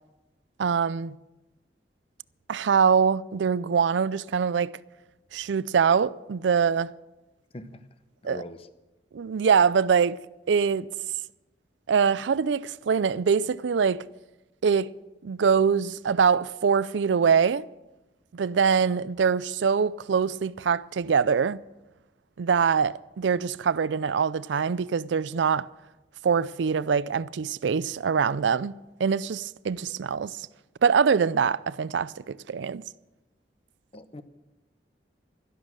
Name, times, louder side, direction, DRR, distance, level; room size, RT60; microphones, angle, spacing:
voice 1, 0.6-1.2 2.5-4.7 5.3-6.9 8.2-8.4 9.1-10.2 10.5-10.9 11.9-14.1 14.6-14.9 15.2-17.7 18.3-21.7 22.4-25.7 26.2-28.7 29.0-30.5 30.8-32.8, right 6 dB, 85° right, 0.4 m, -24 dB
voice 2, 7.5-7.9 8.2-8.7 33.9-34.2, left 2 dB, 30° left, 0.8 m, -41 dB
12.5 x 11.5 x 7.5 m
head